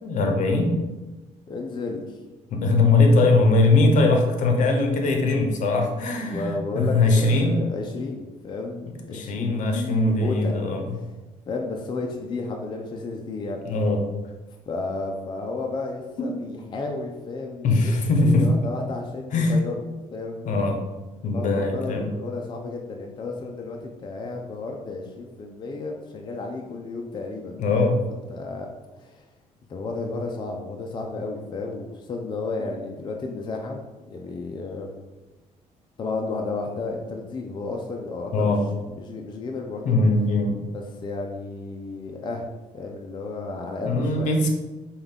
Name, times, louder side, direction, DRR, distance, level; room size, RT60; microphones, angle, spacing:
voice 1, 0.0-0.7 2.5-7.5 9.1-10.8 13.6-14.0 16.2-16.3 17.6-18.5 19.3-19.6 20.4-20.8 21.2-22.1 27.6-28.0 38.3-38.6 39.8-40.6 43.8-44.5, left 2 dB, 65° left, 3 dB, 0.8 m, -21 dB
voice 2, 1.5-2.2 6.2-10.7 11.5-13.6 14.7-17.9 18.4-19.8 20.1-20.5 21.3-28.0 28.3-28.7 29.0-29.2 29.7-34.9 36.0-38.5 39.0-40.0 40.7-42.4 42.7-44.3, left 3 dB, 35° left, 1 dB, 0.5 m, -32 dB
5.2 x 2.4 x 3.6 m, 1.2 s
cardioid pair, 100°, 14 cm